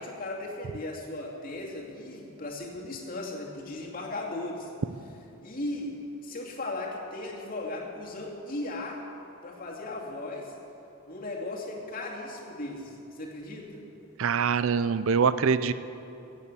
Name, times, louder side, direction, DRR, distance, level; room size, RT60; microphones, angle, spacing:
voice 1, 0.0-4.7 5.4-9.0 9.4-10.5 11.1-13.8, left 2 dB, 40° left, -2 dB, 2.4 m, -37 dB
voice 2, 14.2-15.7, right 6 dB, 65° right, 14 dB, 0.5 m, -24 dB
16.5 x 8.4 x 8.2 m, 2.8 s
head